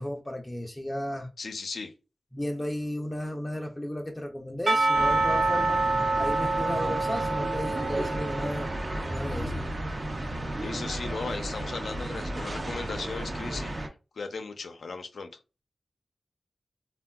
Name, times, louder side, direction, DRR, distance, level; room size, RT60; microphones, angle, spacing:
voice 1, 0.0-1.3 2.3-5.8 6.2-8.7 9.0-9.7, left 1 dB, 20° left, 0.5 m, -34 dB
voice 2, 1.4-1.9 10.6-15.4, left 4 dB, 85° left, 0.5 m, -37 dB
Percussion / Church bell, 4.7-9.1, right 3 dB, 65° right, 0.9 m, -27 dB
sound 1, 4.9-13.9, right 1 dB, 45° right, 0.5 m, -33 dB
3.4 x 2.2 x 2.2 m
wide cardioid pair, 65°, 0 cm